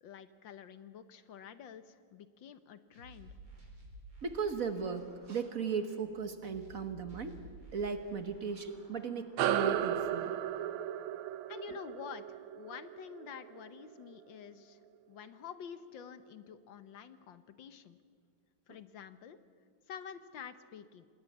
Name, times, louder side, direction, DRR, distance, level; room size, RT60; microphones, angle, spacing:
voice 1, 0.0-3.3 11.5-14.8 15.1-18.0 18.7-19.4 19.9-21.1, left 8 dB, 70° left, 12 dB, 1.7 m, -48 dB
sound 1, 2.9-9.9, right 1 dB, 65° right, 6.1 m, -55 dB
voice 2, 4.2-7.4 7.7-10.3, right 5 dB, 50° right, 9 dB, 1.4 m, -36 dB
sound 2, 9.4-14.2, right 10 dB, 85° right, 1.6 m, -35 dB
27.0 x 20.0 x 7.3 m, 2.1 s
omnidirectional pair, 2.2 m